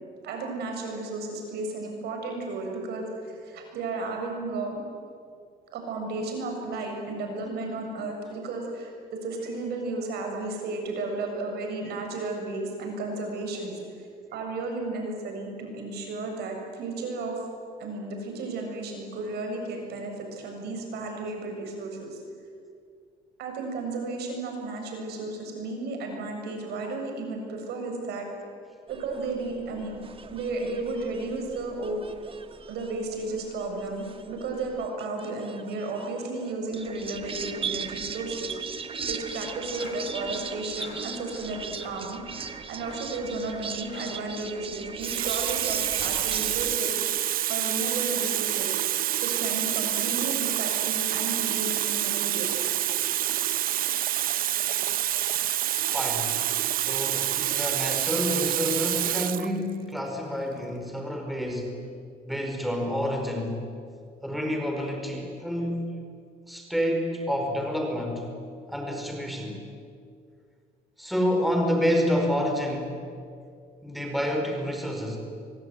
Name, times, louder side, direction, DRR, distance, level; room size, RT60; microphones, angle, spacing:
voice 1, 0.2-4.8 5.7-8.9 9.2-17.4 17.8-22.2 23.4-28.3 28.9-30.0 30.3-32.0 32.7-47.0 47.5-49.0 49.2-52.5 54.4-54.5 55.8-55.9, right 3 dB, 75° right, 2 dB, 7.4 m, -33 dB
sound 1, 28.9-46.8, right 6 dB, 30° right, 1.7 m, -38 dB
Male Breath Fast Loop Stereo, 39.2-44.3, left 5 dB, 75° left, 6.0 m, -47 dB
Water tap faucet, 44.2-44.4 45.0-59.5 60.4-60.6, right 12 dB, 60° right, 0.8 m, -27 dB
voice 2, 55.9-56.3 56.8-61.8 62.3-63.6 64.2-66.0 66.5-68.3 68.7-69.6 71.0-73.0 73.8-75.2, equal, ahead, 2 dB, 5.1 m, -28 dB
25.0 x 23.5 x 9.6 m, 2.3 s
cardioid pair, 110°, 17 cm